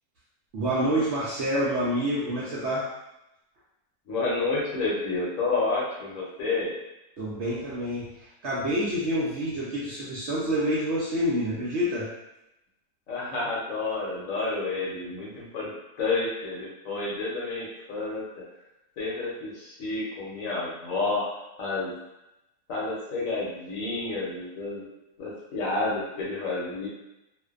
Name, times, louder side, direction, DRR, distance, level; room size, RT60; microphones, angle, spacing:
voice 1, 0.5-2.9 7.2-12.1, equal, 65° right, -8 dB, 0.7 m, -27 dB
voice 2, 4.1-6.7 13.1-15.7 16.0-18.2 19.0-21.3 21.6-22.0 22.7-24.9 25.2-26.9, left 3 dB, 65° left, -5 dB, 1.0 m, -30 dB
2.5 x 2.1 x 2.4 m, 0.92 s
omnidirectional pair, 1.6 m